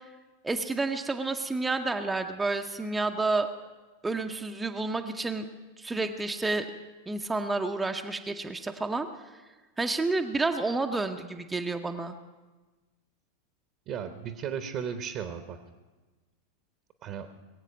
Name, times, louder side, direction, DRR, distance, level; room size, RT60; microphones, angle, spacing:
voice 1, 0.4-3.5 4.0-5.5 5.8-6.7 7.1-9.1 9.8-12.1, right 3 dB, 10° right, 5 dB, 0.7 m, -30 dB
voice 2, 13.9-15.6 17.0-17.3, right 7 dB, 35° right, 8 dB, 0.9 m, -35 dB
21.0 x 8.3 x 6.3 m, 1.3 s
figure-of-eight pair, 90°, 0 cm